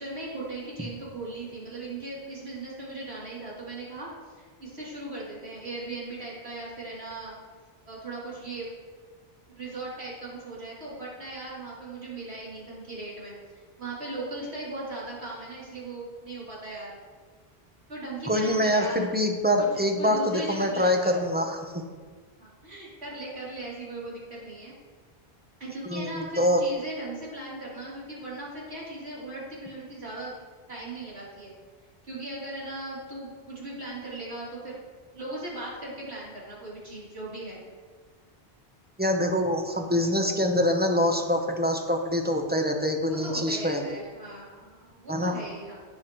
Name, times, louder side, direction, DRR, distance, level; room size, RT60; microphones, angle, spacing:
voice 1, 0.0-4.1 4.4-7.3 7.9-8.7 9.5-17.0 17.9-19.1 19.6-21.2 22.4-24.7 25.6-30.4 30.7-31.5 32.0-34.8 35.1-37.6 39.9-40.1 43.0-45.8, right 2 dB, 90° right, -7 dB, 3.5 m, -38 dB
voice 2, 18.3-21.6 25.8-26.6 39.0-44.0 45.1-45.4, equal, 10° right, 3 dB, 0.7 m, -25 dB
15.0 x 6.0 x 3.1 m, 1.5 s
omnidirectional pair, 1.1 m